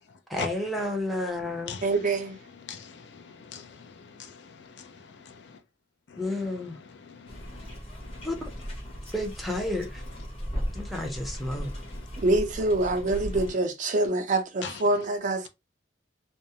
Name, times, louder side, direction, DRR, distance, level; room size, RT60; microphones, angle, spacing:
voice 1, 0.3-1.8 6.2-6.8 8.2-8.3 9.1-10.0 10.7-11.7, left 1 dB, ahead, 0.6 m, -31 dB
voice 2, 1.8-2.4 12.2-15.5, right 2 dB, 45° right, 0.5 m, -25 dB
voice 3, 2.5-5.6 6.1-6.2 7.0-8.3 11.6-12.2 14.6-14.8, left 6 dB, 65° left, 0.4 m, -43 dB
sound 1, 7.3-13.5, equal, 35° left, 0.9 m, -37 dB
2.3 x 2.0 x 2.7 m
head